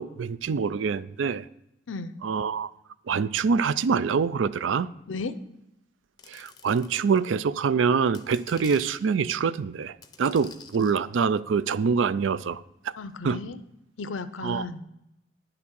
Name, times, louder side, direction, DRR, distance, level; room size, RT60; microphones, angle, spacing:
voice 1, 0.0-1.5 2.2-2.7 3.1-4.9 6.3-12.6 13.2-13.4 14.4-14.7, right 5 dB, 75° right, 0.4 m, -25 dB
sound 1, 6.2-7.4 8.0-9.1 10.0-11.0 11.8-12.6 13.1-13.2, left 5 dB, 20° left, 0.6 m, -49 dB
voice 2, 13.0-13.6 14.0-14.8, left 4 dB, 85° left, 0.6 m, -34 dB
10.5 x 5.9 x 6.3 m
head